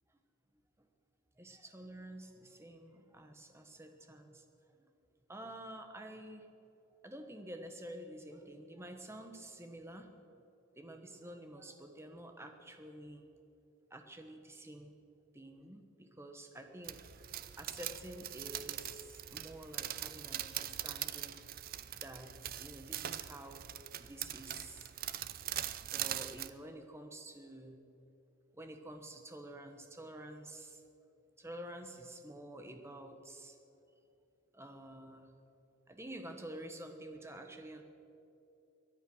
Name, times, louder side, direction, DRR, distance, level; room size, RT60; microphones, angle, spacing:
voice 1, 1.4-4.9 5.3-6.5 7.0-10.1 10.7-13.3 13.9-14.9 15.3-17.3 17.6-21.4 22.0-23.7 24.0-24.9 25.8-27.8 28.5-30.8 31.4-33.6 34.5-35.3 35.9-37.8, right 1 dB, 10° right, 5 dB, 1.2 m, -49 dB
sound 1, 16.8-26.5, right 12 dB, 45° right, 0.5 m, -42 dB
23.0 x 9.2 x 6.3 m, 2.8 s
head